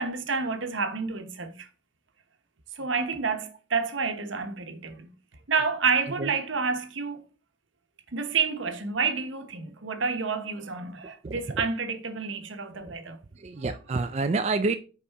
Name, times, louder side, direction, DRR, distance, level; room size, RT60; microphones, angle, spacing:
voice 1, 0.0-1.7 2.7-5.1 5.5-7.2 8.1-13.2, right 5 dB, 85° right, 1.1 m, -29 dB
voice 2, 11.2-11.6 12.7-12.9 13.3-14.7, right 3 dB, 35° right, 0.4 m, -29 dB
9.9 x 4.2 x 3.5 m
head